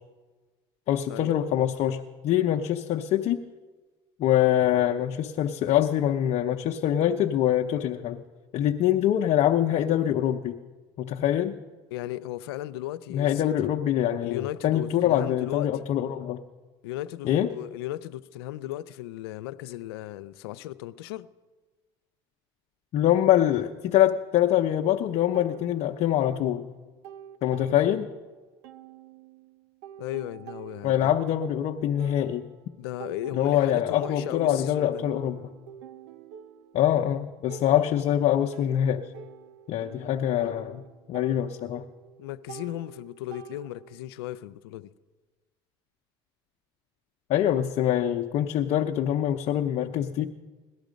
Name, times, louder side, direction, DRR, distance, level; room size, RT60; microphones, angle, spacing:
voice 1, 0.9-3.4 4.2-8.2 8.5-10.6 11.0-11.5 13.1-16.4 17.2-17.5 22.9-26.6 27.4-28.1 30.8-32.5 33.3-35.4 36.7-39.1 39.7-40.8 41.1-41.9 47.3-50.3, left 11 dB, 55° left, 0.8 m, -24 dB
voice 2, 11.9-13.5 14.2-15.8 16.8-21.3 30.0-31.1 32.8-35.1 42.2-44.9, left 14 dB, 90° left, 0.5 m, -36 dB
sound 1, 25.3-26.4 26.7-28.3 28.6-32.7 33.0-44.1, right 9 dB, 80° right, 0.9 m, -47 dB
18.0 x 12.5 x 5.2 m
supercardioid pair, 90°, 13 cm